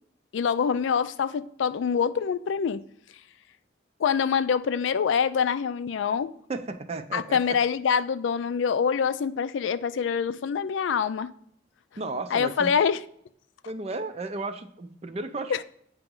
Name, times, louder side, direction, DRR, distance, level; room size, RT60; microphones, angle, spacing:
voice 1, 0.3-2.8 4.0-6.3 7.1-11.3 12.3-13.0 15.5-15.6, left 6 dB, 85° left, 0.4 m, -25 dB
voice 2, 6.5-7.4 12.0-12.7 13.6-15.6, right 3 dB, 35° right, 0.5 m, -34 dB
8.8 x 3.0 x 3.7 m
head